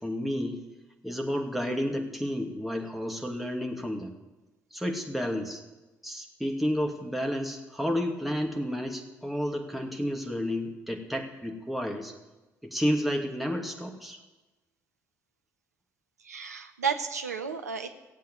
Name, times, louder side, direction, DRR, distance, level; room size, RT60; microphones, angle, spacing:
voice 1, 0.0-0.6 1.0-4.1 4.7-5.6 6.0-12.1 12.6-14.2, equal, ahead, 2 dB, 2.5 m, -31 dB
voice 2, 16.2-18.0, right 6 dB, 85° right, 7 dB, 0.7 m, -32 dB
16.5 x 8.3 x 8.2 m, 1.1 s
figure-of-eight pair, 45°, 8 cm